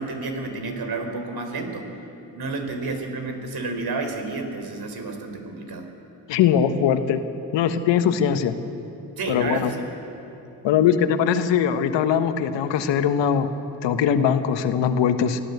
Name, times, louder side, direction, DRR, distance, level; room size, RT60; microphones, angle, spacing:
voice 1, 0.0-1.9 2.3-5.9 9.2-9.8, right 3 dB, 55° right, 5 dB, 4.3 m, -30 dB
voice 2, 6.3-7.2 7.5-8.5 9.3-9.7 10.6-13.5 13.8-15.4, left 8 dB, 75° left, 9 dB, 1.4 m, -21 dB
25.0 x 16.0 x 8.1 m, 2.8 s
hypercardioid pair, 50°, 44 cm